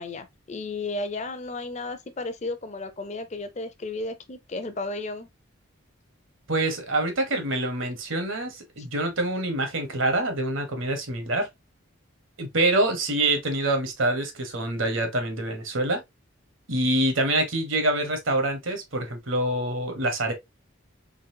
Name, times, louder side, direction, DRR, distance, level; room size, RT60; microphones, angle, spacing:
voice 1, 0.0-5.3, left 2 dB, 35° left, 0.5 m, -33 dB
voice 2, 6.5-11.5 12.4-16.0 16.7-20.3, right 1 dB, 70° right, 1.2 m, -26 dB
3.9 x 3.2 x 2.7 m
head